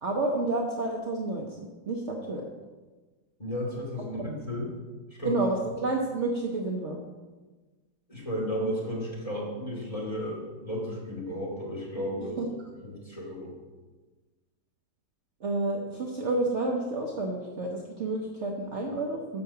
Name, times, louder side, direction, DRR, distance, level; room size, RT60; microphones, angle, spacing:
voice 1, 0.0-1.5 1.9-2.4 4.2-4.3 5.2-7.0 12.4-12.5 15.4-19.4, right 2 dB, 50° right, -1 dB, 1.0 m, -30 dB
voice 2, 3.4-4.7 5.2-5.3 8.1-12.4 12.8-13.5, equal, 20° left, -5 dB, 2.5 m, -33 dB
6.9 x 5.5 x 6.8 m, 1.3 s
omnidirectional pair, 1.8 m